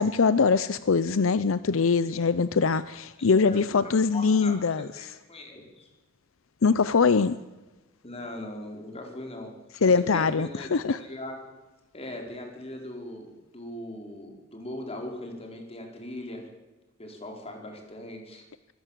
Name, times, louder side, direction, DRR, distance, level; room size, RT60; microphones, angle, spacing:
voice 1, 0.0-5.1 6.6-7.4 9.8-11.0, left 5 dB, 75° left, 15 dB, 0.6 m, -23 dB
voice 2, 3.2-4.6 5.0-5.9 8.0-9.5 9.8-11.4 11.9-16.5 17.0-18.4, left 1 dB, 30° left, 2 dB, 4.7 m, -40 dB
24.0 x 17.0 x 7.5 m, 1.2 s
head